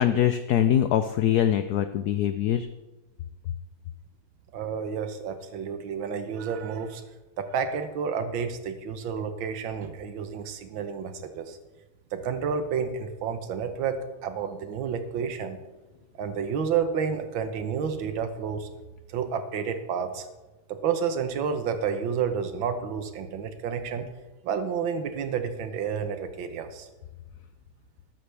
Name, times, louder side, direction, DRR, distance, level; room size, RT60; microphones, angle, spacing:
voice 1, 0.0-2.7, left 10 dB, 75° left, 9 dB, 0.9 m, -23 dB
voice 2, 4.5-7.0 7.4-11.6 12.1-15.6 16.2-18.7 19.1-20.3 20.7-24.1 24.4-26.9, right 6 dB, 75° right, 8 dB, 1.8 m, -30 dB
13.5 x 12.0 x 3.4 m, 1.1 s
omnidirectional pair, 2.2 m